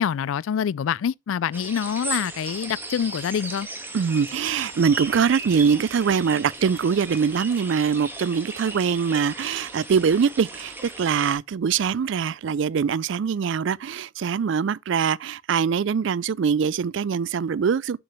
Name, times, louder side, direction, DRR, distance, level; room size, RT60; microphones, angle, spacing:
voice 1, 0.0-3.7, left 8 dB, 75° left, 0.3 m, -26 dB
sound 1, 1.5-11.3, right 2 dB, 10° right, 1.5 m, -36 dB
voice 2, 3.9-18.0, right 6 dB, 60° right, 0.3 m, -23 dB
7.5 x 7.0 x 3.0 m
head